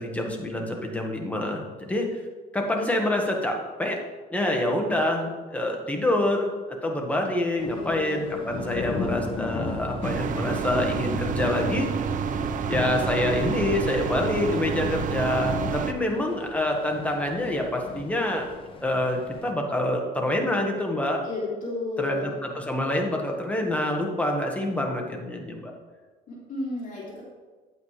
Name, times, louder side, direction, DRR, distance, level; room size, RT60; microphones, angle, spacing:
voice 1, 0.0-2.2 2.5-4.0 4.3-6.5 6.8-11.9 12.7-18.5 18.8-21.2 22.0-25.7, left 1 dB, 10° left, 1 dB, 1.5 m, -26 dB
voice 2, 7.6-9.2 21.2-22.3 26.3-27.2, left 2 dB, 50° left, -5 dB, 2.9 m, -34 dB
sound 1, 7.6-19.5, left 4 dB, 30° left, 1.1 m, -37 dB
sound 2, 10.0-15.9, right 7 dB, 50° right, 0.6 m, -29 dB
9.1 x 8.3 x 3.3 m, 1.3 s
cardioid pair, 110°, 17 cm